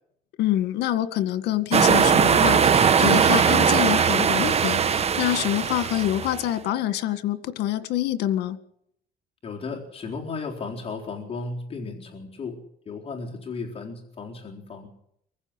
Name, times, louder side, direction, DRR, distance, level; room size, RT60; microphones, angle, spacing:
voice 1, 0.4-8.6, left 13 dB, 80° left, 12 dB, 1.9 m, -26 dB
sound 1, 1.7-6.5, right 7 dB, 40° right, 1.3 m, -20 dB
voice 2, 9.4-12.6 12.9-14.9, left 4 dB, 35° left, 0 dB, 4.0 m, -35 dB
24.5 x 15.5 x 9.9 m, 0.74 s
cardioid pair, 110°, 17 cm